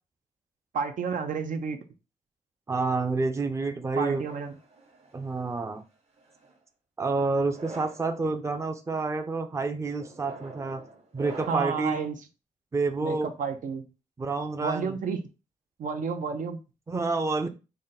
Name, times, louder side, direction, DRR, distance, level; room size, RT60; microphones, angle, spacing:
voice 1, 0.7-1.8 4.0-4.6 11.5-12.2 13.0-13.8 14.6-15.2 15.8-16.6, right 5 dB, 75° right, 0.6 m, -30 dB
voice 2, 2.7-4.2 5.1-5.8 7.0-10.8 11.1-12.0 12.7-13.3 14.2-15.0 16.9-17.5, right 3 dB, 20° right, 0.5 m, -28 dB
sound 1, 4.0-5.4 6.2-6.6 7.4-8.1 8.7-9.0 10.0-11.9, right 2 dB, 50° right, 1.0 m, -45 dB
3.8 x 2.2 x 4.0 m
cardioid pair, 100°, 14 cm